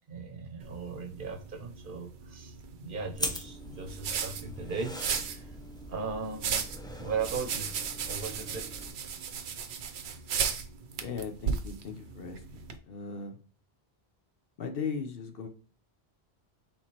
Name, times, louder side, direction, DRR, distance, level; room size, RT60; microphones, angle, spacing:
voice 1, 0.1-5.5 5.9-6.7 7.0-7.7 8.1-8.7, right 5 dB, 55° right, 0.9 m, -37 dB
sound 1, 0.6-12.8, right 7 dB, 80° right, 0.9 m, -36 dB
sound 2, 3.1-8.9, equal, 5° left, 0.4 m, -41 dB
voice 2, 11.0-12.4 12.9-13.3 14.6-15.5, left 5 dB, 65° left, 0.9 m, -37 dB
4.5 x 3.6 x 2.9 m
omnidirectional pair, 1.1 m